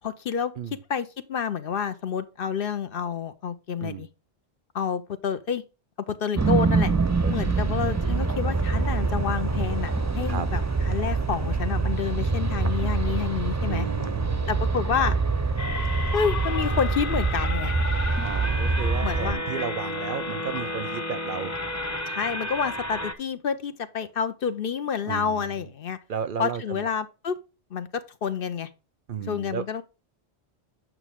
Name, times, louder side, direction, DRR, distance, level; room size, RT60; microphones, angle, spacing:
voice 1, 0.0-0.5 0.9-4.1 4.7-5.6 6.1-6.9 7.3-13.9 14.5-15.2 16.1-17.8 19.0-19.4 22.1-26.0 26.4-27.4 27.7-28.7 29.3-29.8, left 7 dB, 60° left, 0.9 m, -29 dB
sound 1, 6.4-19.3, right 4 dB, 20° right, 0.5 m, -25 dB
voice 2, 7.2-7.6 10.3-10.5 13.7-14.5 18.2-21.5 25.0-25.6 26.1-26.9 29.1-29.7, right 7 dB, 55° right, 0.7 m, -33 dB
sound 2, 15.6-23.1, left 2 dB, 15° left, 0.9 m, -32 dB
9.0 x 6.0 x 3.5 m
omnidirectional pair, 1.1 m